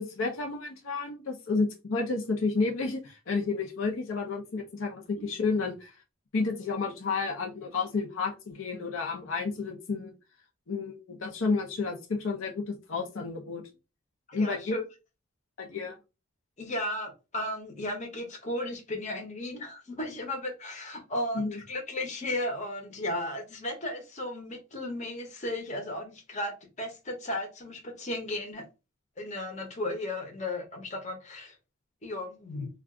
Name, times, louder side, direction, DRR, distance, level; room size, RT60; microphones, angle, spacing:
voice 1, 0.0-5.9 6.3-10.2 10.7-13.6 14.3-14.7 15.6-16.0 21.3-21.6, left 4 dB, 75° left, 0.6 m, -31 dB
voice 2, 14.3-14.8 16.6-28.6 29.2-31.6 32.0-32.7, left 1 dB, 35° left, 0.8 m, -35 dB
2.4 x 2.3 x 3.6 m
head